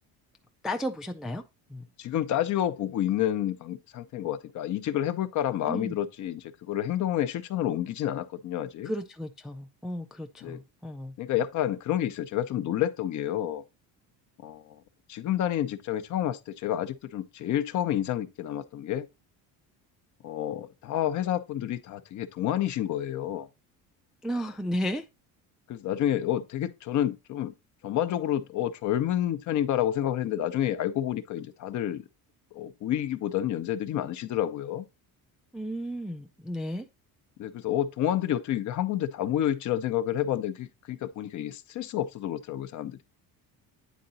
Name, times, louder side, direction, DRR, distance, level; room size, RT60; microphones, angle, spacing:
voice 1, 0.6-1.4 1.7-1.8 5.7-6.0 8.8-11.1 24.2-25.1 35.5-36.9, equal, ahead, 0.3 m, -33 dB
voice 2, 2.0-8.9 10.4-10.6 11.2-13.6 14.4-14.8 15.1-19.1 20.2-23.5 25.7-27.5 27.8-32.0 32.5-34.9 37.4-43.1, left 11 dB, 50° left, 0.7 m, -29 dB
9.3 x 3.8 x 4.0 m
cardioid pair, 140°, 38 cm